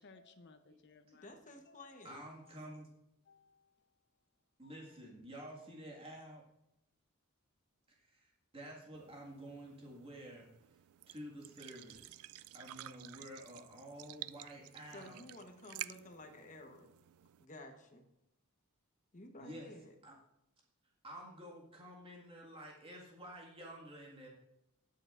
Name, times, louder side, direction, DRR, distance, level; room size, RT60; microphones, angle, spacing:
voice 1, 0.0-1.3 1.7-1.9 2.4-2.6 3.3-3.7 4.8-4.9, left 3 dB, 55° left, 9 dB, 0.8 m, -61 dB
voice 2, 1.2-2.2 14.9-16.9 17.4-18.0 19.1-19.9, left 1 dB, 35° left, 4 dB, 1.1 m, -53 dB
voice 3, 2.0-2.9 4.6-6.4 7.9-10.5 11.1-12.3 12.5-15.2 19.4-19.7 20.0-20.2 21.0-24.3, right 1 dB, 25° right, -2 dB, 1.9 m, -50 dB
sound 1, 8.9-17.4, right 15 dB, 80° right, 0.3 m, -51 dB
19.0 x 6.5 x 2.5 m, 0.84 s
head